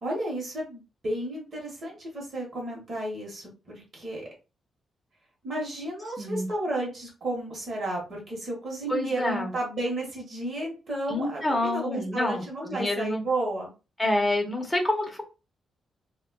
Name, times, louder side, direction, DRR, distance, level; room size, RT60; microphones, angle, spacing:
voice 1, 0.0-4.3 5.4-13.7, right 1 dB, 40° right, -1 dB, 1.1 m, -32 dB
voice 2, 6.2-6.5 8.9-9.5 11.1-13.2 14.0-15.2, left 1 dB, 10° left, 1 dB, 0.8 m, -27 dB
4.0 x 2.2 x 2.2 m, 0.30 s
wide cardioid pair, 160°, 0 cm